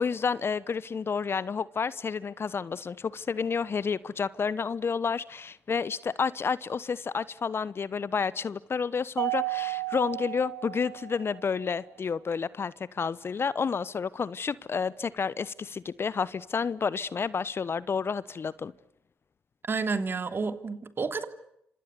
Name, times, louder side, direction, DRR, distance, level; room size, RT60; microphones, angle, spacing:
voice 1, 0.0-18.7, left 5 dB, 40° left, 1.0 m, -30 dB
Mallet percussion, 9.2-11.6, right 24 dB, 70° right, 1.3 m, -33 dB
voice 2, 19.6-21.2, right 4 dB, 35° right, 2.8 m, -30 dB
29.5 x 27.0 x 6.9 m
hypercardioid pair, 45°, 6 cm